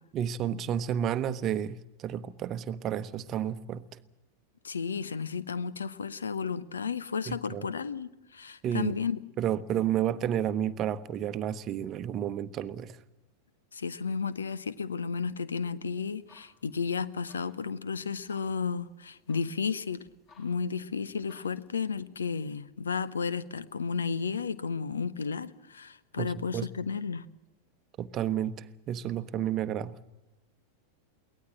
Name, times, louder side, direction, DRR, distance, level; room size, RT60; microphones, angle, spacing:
voice 1, 0.1-3.8 7.3-7.7 8.6-9.0 9.4-13.0 26.2-26.7 28.0-29.9, right 10 dB, 30° right, 13 dB, 1.0 m, -31 dB
voice 2, 4.6-9.2 13.7-20.0 20.4-27.2, left 5 dB, 70° left, 17 dB, 1.0 m, -33 dB
sound 1, 16.1-21.7, left 4 dB, 35° left, 7.0 m, -63 dB
23.0 x 18.0 x 7.5 m, 0.97 s
figure-of-eight pair, 90°, 0 cm